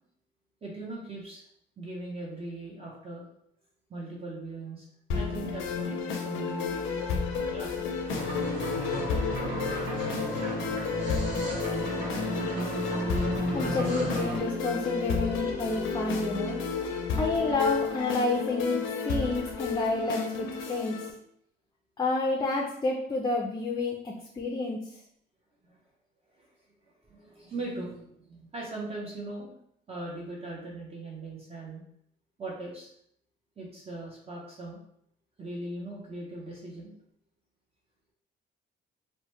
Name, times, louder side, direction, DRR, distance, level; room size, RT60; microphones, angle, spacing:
voice 1, 0.6-1.4 1.8-3.2 3.9-4.9 5.1-6.8 7.4-7.8 25.6-25.8 26.4-26.5 27.1-29.5 29.9-31.8 32.4-32.9 33.6-34.8 35.4-36.9, right 2 dB, 30° right, -3 dB, 0.6 m, -39 dB
sound 1, 5.1-21.1, left 5 dB, 85° left, 0.5 m, -32 dB
sound 2, 6.6-17.2, right 1 dB, 90° right, 0.7 m, -45 dB
sound 3, 8.1-14.4, right 1 dB, 70° right, 1.4 m, -33 dB
voice 2, 13.5-16.6 17.1-21.0 22.0-24.8, left 3 dB, 20° left, 0 dB, 0.4 m, -29 dB
2.8 x 2.1 x 3.0 m, 0.72 s
cardioid pair, 90°, 20 cm